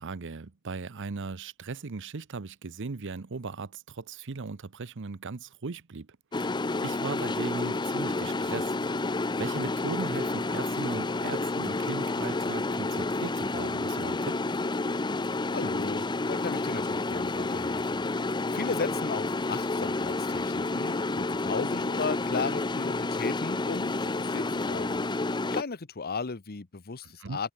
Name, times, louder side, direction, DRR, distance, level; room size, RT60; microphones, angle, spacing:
voice 1, 0.0-6.1 6.4-6.6 6.8-8.8 9.1-14.4 27.2-27.4, right 4 dB, 60° right, 0.8 m, -38 dB
sound 1, 6.3-25.6, left 2 dB, 20° left, 0.7 m, -30 dB
voice 2, 15.5-25.0 25.5-27.5, left 4 dB, 45° left, 1.0 m, -35 dB
head